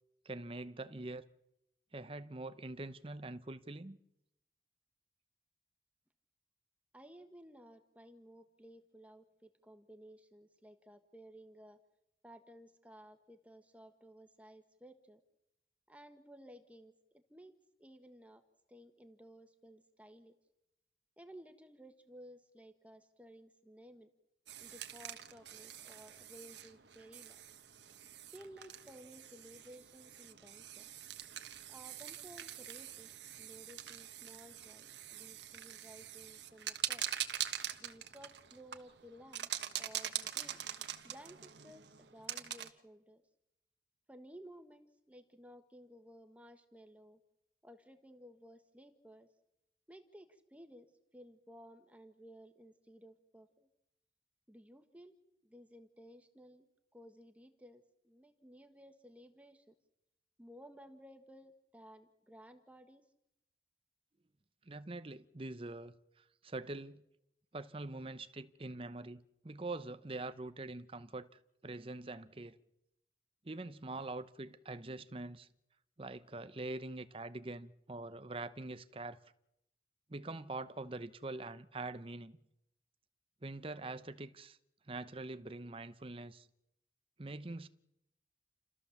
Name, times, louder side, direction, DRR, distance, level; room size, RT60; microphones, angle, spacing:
voice 1, 0.2-1.3 1.9-4.0 64.7-67.0 67.5-72.6 73.4-75.5 76.0-79.2 80.1-82.4 83.4-84.6 84.9-86.5 87.2-87.7, right 2 dB, 30° right, 0.8 m, -44 dB
voice 2, 6.9-11.8 12.2-15.2 15.9-17.5 17.8-18.4 18.7-20.3 21.2-24.1 24.6-27.4 28.3-30.9 31.7-33.1 33.4-37.0 37.8-39.5 39.8-40.6 41.0-43.2 44.1-47.2 47.6-49.3 49.9-50.9 51.1-53.7 54.5-55.1 55.4-59.7 60.4-63.1, equal, 10° right, 1.3 m, -56 dB
sound 1, 24.5-42.7, right 11 dB, 85° right, 1.3 m, -44 dB
29.5 x 14.0 x 7.1 m
head